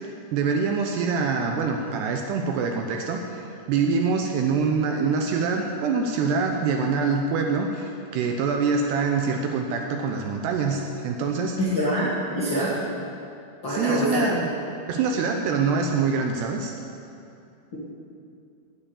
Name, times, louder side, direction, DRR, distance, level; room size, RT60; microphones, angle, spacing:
voice 1, 0.3-11.6 13.7-14.5 14.9-16.7, right 5 dB, 80° right, 3 dB, 2.6 m, -25 dB
voice 2, 11.6-12.7 13.6-14.2, equal, 75° left, -8 dB, 1.1 m, -25 dB
9.3 x 8.6 x 8.5 m, 2.6 s
omnidirectional pair, 5.4 m